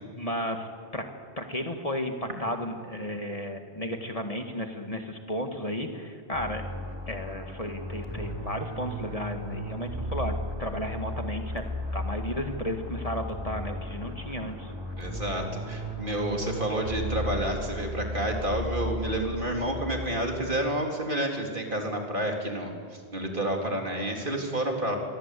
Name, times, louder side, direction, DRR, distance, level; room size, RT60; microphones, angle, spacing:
voice 1, 0.2-0.7 0.9-1.1 1.4-6.7 7.1-10.3 10.6-11.6 11.9-14.7, left 1 dB, 30° left, 4 dB, 2.0 m, -33 dB
sound 1, 6.3-20.4, left 1 dB, 20° right, 3.4 m, -35 dB
voice 2, 15.0-22.7 23.1-25.0, right 1 dB, 50° right, 1 dB, 3.8 m, -29 dB
27.5 x 23.0 x 8.5 m, 2.1 s
omnidirectional pair, 1.1 m